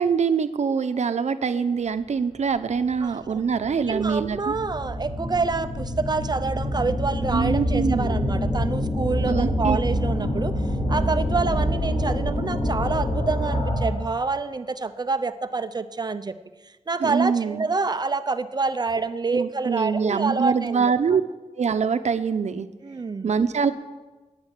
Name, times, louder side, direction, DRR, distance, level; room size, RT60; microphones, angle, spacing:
voice 1, 0.0-4.5 7.3-8.2 9.3-9.8 17.0-17.6 19.3-21.2 21.6-22.7 23.2-23.7, right 6 dB, 70° right, 10 dB, 0.8 m, -24 dB
sound 1, 2.7-2.8 3.4-14.1, equal, 45° left, 6.3 m, -26 dB
voice 2, 3.0-3.4 3.9-10.5 10.9-16.4 16.9-20.9 22.8-23.3, right 4 dB, 35° right, 11 dB, 0.6 m, -27 dB
11.0 x 9.6 x 9.8 m, 1.2 s
wide cardioid pair, 135°, 12 cm